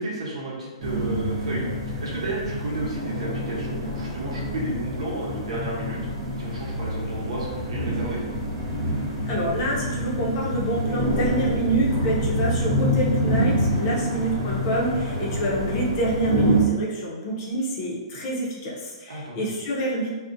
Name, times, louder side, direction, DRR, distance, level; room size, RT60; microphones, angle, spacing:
voice 1, 0.0-1.7 2.0-6.0 6.4-8.2 13.6-14.0 19.1-19.5, right 1 dB, 75° right, -4 dB, 0.9 m, -32 dB
sound 1, 0.8-16.6, equal, 20° right, 0.7 m, -27 dB
voice 2, 9.3-20.1, right 1 dB, 30° left, -4 dB, 0.5 m, -27 dB
2.4 x 2.0 x 2.6 m, 1.3 s
hypercardioid pair, 170°, 3 cm